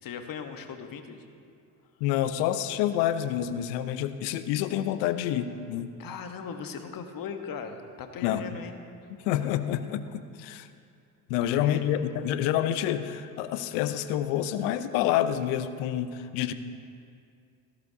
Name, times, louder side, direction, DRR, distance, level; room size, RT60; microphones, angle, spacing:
voice 1, 0.0-1.2 6.0-8.7 9.0-9.1 11.4-11.8, left 6 dB, 50° left, 6 dB, 1.2 m, -38 dB
voice 2, 2.0-5.9 8.2-8.4 9.2-10.7 11.3-16.5, left 11 dB, 70° left, 12 dB, 0.8 m, -28 dB
16.5 x 11.5 x 2.8 m, 2.4 s
hypercardioid pair, 65°, 45 cm